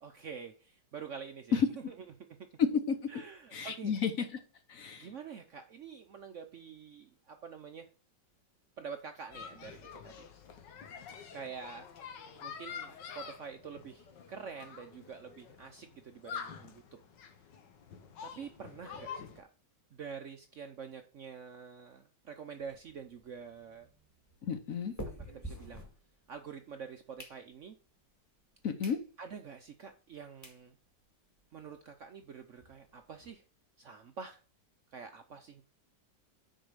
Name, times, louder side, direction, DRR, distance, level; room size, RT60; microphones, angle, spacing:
voice 1, 0.0-1.9 3.1-3.9 5.0-7.9 8.8-10.3 11.3-11.9 12.4-16.8 18.2-19.5 19.9-23.9 25.3-25.9 26.3-27.7 29.2-30.7 31.5-33.4 33.8-34.4 34.9-35.6, right 6 dB, 60° right, 7 dB, 0.8 m, -47 dB
voice 2, 2.6-3.0 3.5-4.4 4.7-5.1 24.4-24.9 28.6-29.0, left 6 dB, 55° left, 8 dB, 1.1 m, -31 dB
sound 1, 9.3-19.4, left 7 dB, 75° left, 1.7 m, -47 dB
sound 2, 22.7-26.5 26.9-27.9 28.4-28.5 28.8-29.0 29.5-29.6 30.1-30.2 30.4-30.6 31.1-31.2 31.3-31.5 31.7-31.8 32.1-33.3, equal, 10° left, 1.8 m, -48 dB
6.5 x 4.8 x 6.5 m, 0.37 s
omnidirectional pair, 1.9 m